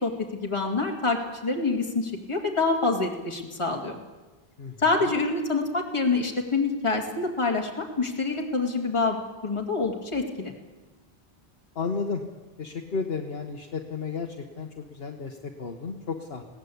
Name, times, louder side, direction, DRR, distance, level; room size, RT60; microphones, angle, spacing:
voice 1, 0.0-4.0 4.8-10.5, left 3 dB, 30° left, 0 dB, 2.3 m, -26 dB
voice 2, 11.7-12.2 12.6-16.4, left 4 dB, 70° left, 1 dB, 1.6 m, -33 dB
20.5 x 17.5 x 8.5 m, 1.2 s
omnidirectional pair, 1.0 m